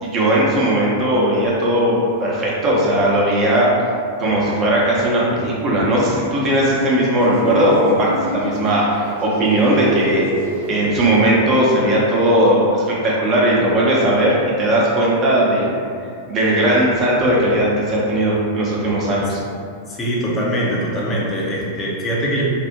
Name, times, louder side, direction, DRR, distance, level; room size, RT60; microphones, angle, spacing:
voice 1, 0.0-3.7 4.2-10.2 10.7-15.8 16.3-19.4, right 1 dB, 35° right, -5 dB, 0.8 m, -17 dB
sound 1, 7.2-11.2, equal, 75° right, 0.8 m, -28 dB
voice 2, 19.9-22.4, equal, 25° left, -4 dB, 0.7 m, -22 dB
3.3 x 2.1 x 2.8 m, 2.3 s
figure-of-eight pair, 95°, 0 cm